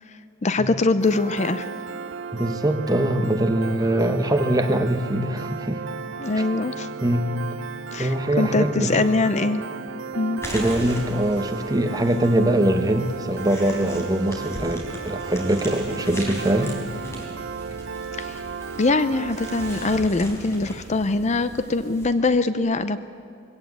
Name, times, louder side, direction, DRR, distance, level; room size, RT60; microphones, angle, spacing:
voice 1, 0.4-1.7 6.2-6.9 7.9-9.6 10.1-10.4 18.1-18.5 18.8-23.0, left 3 dB, 35° left, 13 dB, 0.6 m, -23 dB
Piano, 1.0-20.0, right 6 dB, 65° right, 0.6 m, -35 dB
voice 2, 2.3-5.8 7.0-7.3 8.0-9.1 10.5-16.7, right 1 dB, 20° right, 7 dB, 1.1 m, -22 dB
sound 1, 10.4-22.1, equal, 15° left, 4.0 m, -38 dB
21.5 x 17.0 x 8.2 m, 2.6 s
head